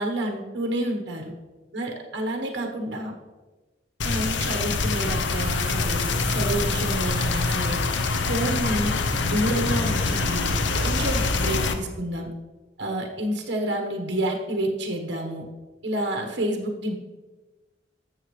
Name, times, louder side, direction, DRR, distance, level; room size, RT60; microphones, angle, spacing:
voice 1, 0.0-1.3 1.7-3.2 4.0-6.0 6.3-7.8 8.3-10.5 10.7-12.3 12.8-15.5 15.8-17.0, right 1 dB, 80° right, 2 dB, 1.2 m, -29 dB
sound 1, 4.0-11.7, left 3 dB, 80° left, 0.7 m, -25 dB
13.0 x 7.3 x 3.2 m, 1.2 s
head